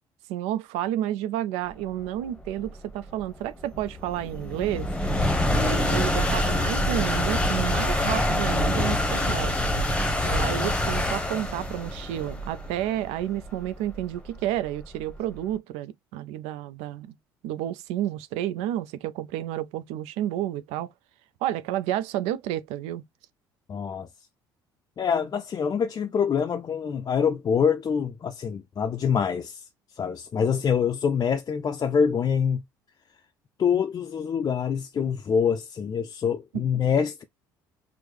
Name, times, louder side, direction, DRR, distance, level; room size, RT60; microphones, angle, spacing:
voice 1, 0.3-4.9 5.5-9.5 10.2-17.2 17.4-20.9 21.4-23.0, right 12 dB, 70° right, 0.4 m, -30 dB
sound 1, 2.0-15.4, left 1 dB, 10° left, 0.9 m, -26 dB
voice 2, 23.7-24.1 25.0-29.7 30.0-32.6 33.6-37.2, left 7 dB, 35° left, 0.4 m, -25 dB
4.5 x 2.0 x 3.2 m
hypercardioid pair, 60°, 11 cm